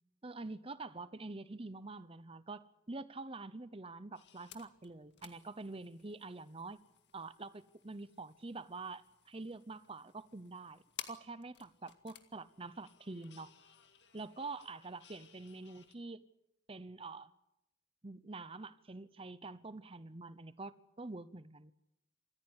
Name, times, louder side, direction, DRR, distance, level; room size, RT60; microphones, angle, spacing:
voice 1, 0.2-6.8 7.1-9.0 9.3-13.5 14.1-16.3 16.7-17.3 18.0-21.7, right 3 dB, 30° right, 0.9 m, -46 dB
sound 1, 4.1-15.9, left 9 dB, 65° left, 2.1 m, -57 dB
27.0 x 14.5 x 9.7 m
head